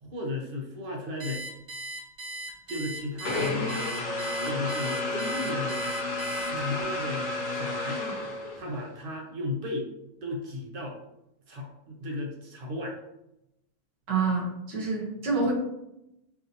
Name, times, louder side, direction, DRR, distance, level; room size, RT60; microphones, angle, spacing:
voice 1, 0.0-1.4 2.7-3.9 4.4-5.8 6.5-8.0 8.5-9.9 10.2-11.0 11.5-13.0, left 2 dB, 55° right, -1 dB, 0.6 m, -34 dB
Alarm, 1.2-6.8, right 2 dB, 35° right, 1.3 m, -38 dB
sound 1, 3.2-8.8, left 3 dB, 70° left, 1.2 m, -33 dB
Wind instrument woodwind instrument, 4.0-8.7, equal, 50° left, 0.9 m, -36 dB
voice 2, 14.1-15.5, right 4 dB, 85° right, -2 dB, 1.6 m, -27 dB
4.6 x 2.7 x 2.6 m, 0.85 s
omnidirectional pair, 1.8 m